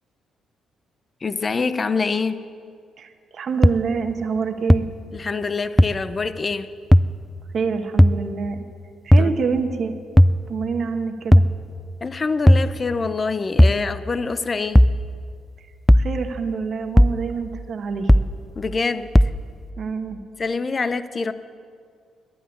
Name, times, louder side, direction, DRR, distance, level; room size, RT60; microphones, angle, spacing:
voice 1, 1.2-2.4 5.1-6.7 9.2-9.3 12.0-14.8 18.6-19.1 20.4-21.3, left 4 dB, 35° left, 13 dB, 0.7 m, -25 dB
voice 2, 3.0-4.8 7.5-8.7 9.0-10.0 10.5-11.5 15.9-18.2 19.8-20.2, right 5 dB, 55° right, 6 dB, 1.2 m, -26 dB
sound 1, 3.6-3.7 4.7-4.8 5.8-5.9 6.9-7.1 8.0-8.2 9.1-9.3 10.2-10.4 11.3-11.5 12.5-12.7 13.6-13.8 14.8-15.0 15.9-16.1 17.0-17.2 18.1-18.3 19.2-19.4, equal, 5° left, 0.3 m, -13 dB
11.5 x 10.5 x 9.7 m, 2.2 s
cardioid pair, 90°, 0 cm